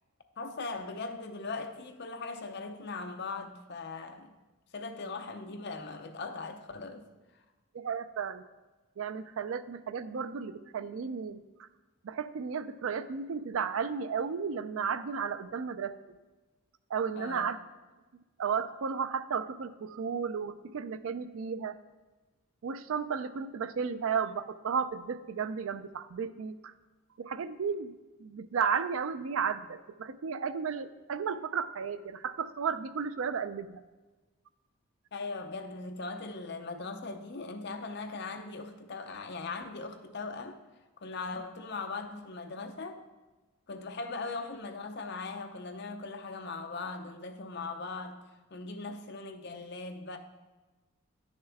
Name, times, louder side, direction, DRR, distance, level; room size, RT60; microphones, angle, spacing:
voice 1, 0.4-4.3 4.7-7.0 7.3-7.4 17.2-17.5 35.1-40.6 41.0-43.0 43.7-50.2, left 3 dB, 50° left, 0.7 m, -39 dB
voice 2, 7.7-8.4 9.0-11.7 12.0-16.0 16.9-17.6 18.4-21.8 22.6-26.7 27.2-27.9 28.2-33.8, right 6 dB, 70° right, 0.4 m, -34 dB
9.9 x 6.5 x 3.5 m
head